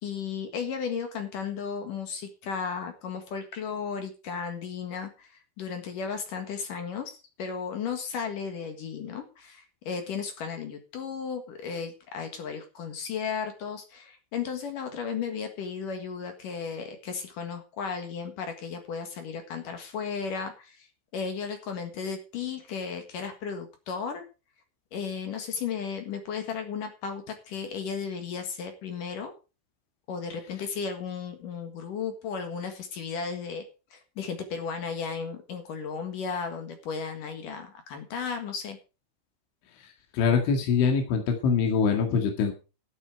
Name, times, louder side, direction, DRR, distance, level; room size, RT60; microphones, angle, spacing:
voice 1, 0.0-20.9 21.1-24.2 24.9-29.3 30.1-33.6 33.9-38.8, left 6 dB, 55° left, 6 dB, 2.7 m, -34 dB
voice 2, 40.1-42.5, left 6 dB, 75° left, 4 dB, 4.4 m, -24 dB
13.5 x 8.6 x 4.7 m, 0.32 s
omnidirectional pair, 5.4 m